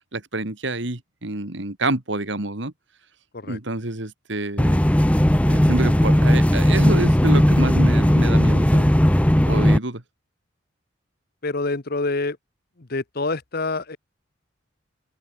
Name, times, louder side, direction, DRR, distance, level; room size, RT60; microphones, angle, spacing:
voice 1, 0.1-2.7 3.4-4.8 5.5-8.9 9.5-10.0, right 2 dB, 60° right, 2.2 m, -27 dB
sound 1, 4.6-9.8, equal, 5° left, 0.7 m, -17 dB
voice 2, 11.4-12.4 12.8-14.0, left 3 dB, 50° left, 1.0 m, -26 dB
open air
head